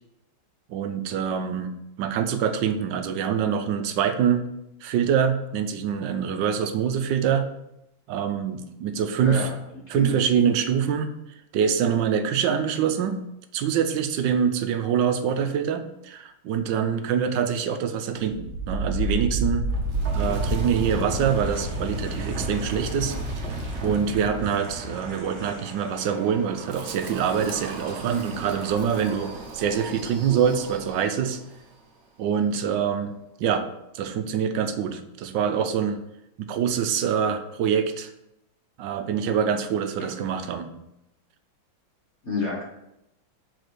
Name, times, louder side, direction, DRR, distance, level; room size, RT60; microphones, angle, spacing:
voice 1, 0.7-4.4 4.8-7.5 8.1-9.5 9.9-11.1 11.5-13.2 13.5-19.7 20.1-23.2 23.8-31.4 32.2-33.1 33.4-33.7 33.9-36.0 36.4-38.1 38.8-40.8, right 7 dB, 75° right, 8 dB, 1.2 m, -25 dB
voice 2, 9.2-10.2 40.0-40.1 42.2-42.6, left 3 dB, 40° left, -4 dB, 1.2 m, -30 dB
Wind, 18.3-31.2, right 1 dB, 45° right, 1.1 m, -31 dB
5.0 x 4.3 x 6.1 m, 0.85 s
omnidirectional pair, 2.2 m